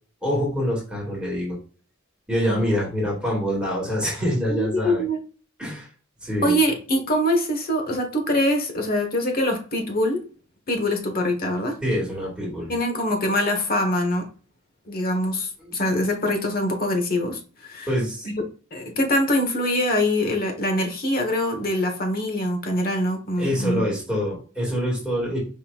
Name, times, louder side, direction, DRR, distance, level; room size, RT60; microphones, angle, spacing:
voice 1, 0.2-1.6 2.3-5.0 5.6-5.9 6.2-6.6 11.8-12.7 15.6-15.7 17.9-18.3 23.4-25.4, equal, 5° right, -5 dB, 2.3 m, -25 dB
voice 2, 4.5-5.2 6.4-10.2 10.7-11.8 12.7-14.3 14.9-17.9 18.2-18.4 18.7-23.9, left 1 dB, 45° left, 3 dB, 1.3 m, -24 dB
5.4 x 3.9 x 2.5 m, 0.37 s
head